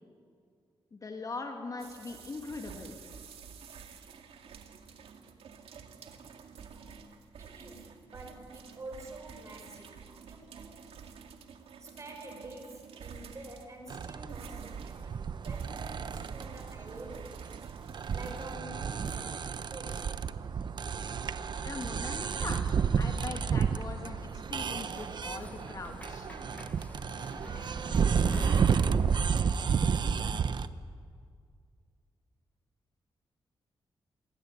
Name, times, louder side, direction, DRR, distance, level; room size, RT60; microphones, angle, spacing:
voice 1, 0.9-3.0 21.6-22.7 23.0-26.3, left 3 dB, 40° left, 3 dB, 2.7 m, -41 dB
sound 1, 1.8-18.6, right 6 dB, 90° right, 2.2 m, -50 dB
voice 2, 7.4-10.8 11.8-17.4 18.1-20.1, right 1 dB, 30° right, 3 dB, 6.4 m, -48 dB
sound 2, 13.9-30.7, right 6 dB, 50° right, 0.9 m, -31 dB
sound 3, 24.2-31.3, left 2 dB, 15° left, 1.2 m, -47 dB
28.0 x 23.5 x 8.4 m, 2.2 s
wide cardioid pair, 130°, 10 cm